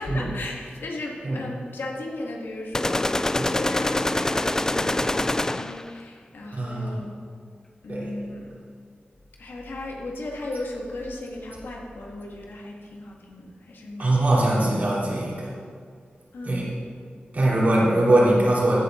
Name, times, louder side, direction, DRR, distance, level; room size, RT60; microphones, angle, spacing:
voice 1, 0.0-7.2 7.8-8.5 9.4-14.3 16.3-16.8, left 2 dB, 85° left, -1 dB, 2.1 m, -36 dB
sound 1, 2.7-5.9, left 1 dB, 15° left, 0.3 m, -25 dB
voice 2, 6.5-7.0 7.9-8.2 14.0-15.5 16.4-16.7 17.3-18.8, right 1 dB, 50° right, -6 dB, 3.5 m, -22 dB
15.0 x 9.6 x 3.9 m, 2.2 s
wide cardioid pair, 100°, 4 cm